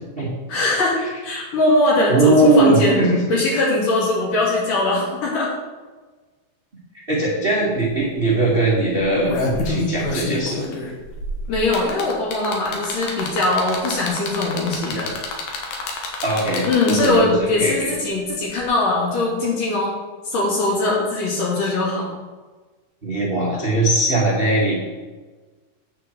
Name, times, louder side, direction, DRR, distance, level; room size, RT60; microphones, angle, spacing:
voice 1, 0.5-3.0 3.3-5.5 11.5-15.1 16.6-19.9 20.3-22.1, left 2 dB, 60° left, -4 dB, 3.9 m, -21 dB
voice 2, 2.1-3.2 7.1-10.6 16.2-17.3 17.6-17.9 21.6-21.7 23.0-24.8, right 2 dB, 40° right, -5 dB, 0.7 m, -19 dB
sound 1, 7.8-7.9 8.2-8.4 9.0-17.4 18.6-18.7, left 3 dB, 80° left, 3.2 m, -28 dB
9.1 x 4.7 x 7.7 m, 1.3 s
omnidirectional pair, 4.3 m